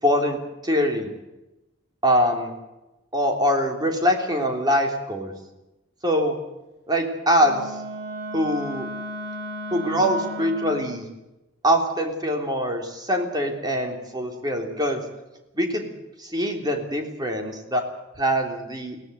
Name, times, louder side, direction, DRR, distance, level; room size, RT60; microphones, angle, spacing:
voice 1, 0.0-1.1 2.0-2.5 3.1-5.3 6.0-6.4 6.9-7.8 8.3-8.9 9.7-11.0 11.6-15.0 15.5-15.9 16.2-17.8 18.2-19.0, equal, 20° right, 3 dB, 3.3 m, -23 dB
Wind instrument woodwind instrument, 7.4-11.0, equal, 55° right, 5.4 m, -34 dB
22.5 x 17.0 x 8.2 m, 0.99 s
head